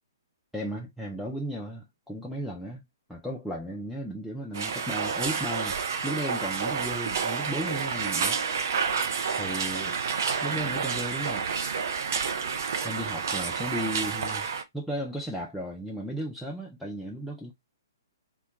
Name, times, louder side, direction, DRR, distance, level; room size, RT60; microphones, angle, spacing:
voice 1, 0.5-2.8 3.1-8.4 9.4-10.0 10.4-11.5 12.8-14.5 14.7-17.5, equal, ahead, 0.4 m, -35 dB
sound 1, 4.5-14.6, right 6 dB, 55° right, 0.5 m, -29 dB
2.8 x 2.2 x 3.3 m
figure-of-eight pair, 125°, 2 cm